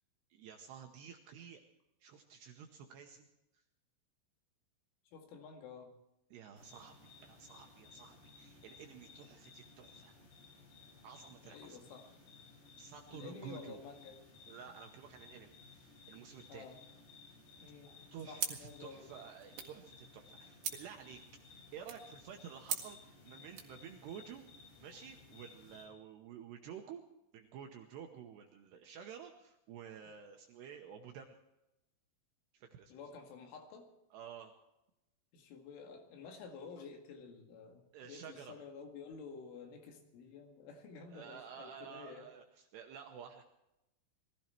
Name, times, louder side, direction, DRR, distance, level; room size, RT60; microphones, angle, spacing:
voice 1, 0.3-1.6 2.0-3.3 3.5-3.6 6.3-10.1 11.0-12.0 12.5-13.8 14.5-16.7 18.1-21.2 21.6-24.5 24.8-27.0 27.3-31.4 32.5-32.9 34.1-34.5 37.9-38.6 41.1-43.4, right 8 dB, 75° right, 4 dB, 2.5 m, -51 dB
voice 2, 5.1-5.9 11.4-12.1 13.1-14.2 16.5-16.8 17.6-17.9 18.3-19.1 32.9-33.9 35.3-42.3, left 5 dB, 75° left, 3 dB, 4.4 m, -51 dB
sound 1, 6.6-25.8, left 4 dB, 55° left, 7.0 m, -58 dB
sound 2, 18.4-23.8, right 8 dB, 55° right, 2.5 m, -45 dB
21.0 x 15.5 x 4.5 m, 0.89 s
omnidirectional pair, 5.9 m